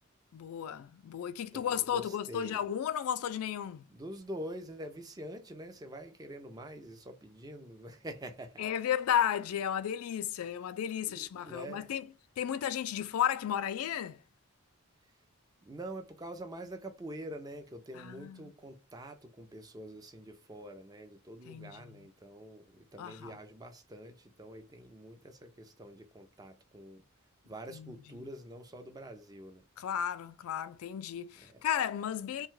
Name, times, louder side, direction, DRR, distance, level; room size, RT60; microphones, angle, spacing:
voice 1, 0.3-3.8 8.6-12.1 12.4-14.2 18.0-18.5 21.5-22.0 23.0-23.3 27.7-27.9 29.8-32.5, left 9 dB, 75° left, 0.3 m, -34 dB
voice 2, 1.5-2.6 3.9-8.7 11.1-11.9 15.6-27.0 27.5-29.6 31.4-31.6, right 1 dB, 15° right, 0.4 m, -46 dB
2.7 x 2.2 x 3.0 m
head